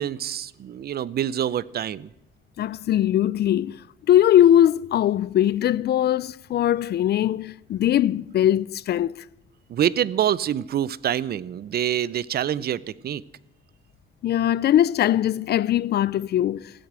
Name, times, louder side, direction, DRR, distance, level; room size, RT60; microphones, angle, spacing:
voice 1, 0.0-2.1 9.7-13.2, right 10 dB, 50° right, 0.6 m, -26 dB
voice 2, 2.6-3.8 4.1-9.2 14.2-16.7, left 11 dB, 55° left, 0.4 m, -20 dB
15.5 x 8.2 x 8.1 m
cardioid pair, 90°, 20 cm